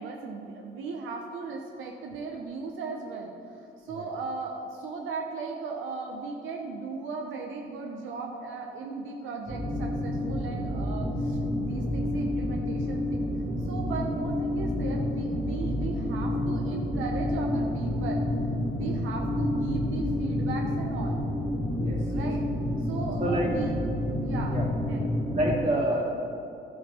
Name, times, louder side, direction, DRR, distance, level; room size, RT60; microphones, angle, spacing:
voice 1, 0.0-13.3 13.6-18.2 18.6-21.2 22.1-22.4 22.8-23.7 24.2-24.6 24.9-25.2, right 4 dB, 85° right, 1 dB, 0.8 m, -37 dB
sound 1, 9.5-25.6, left 1 dB, 15° right, 2.4 m, -29 dB
voice 2, 21.8-22.3 23.2-23.5 24.5-24.7 25.3-26.1, right 1 dB, 35° right, -4 dB, 2.4 m, -28 dB
11.5 x 5.0 x 5.6 m, 2.7 s
cardioid pair, 90°, 20 cm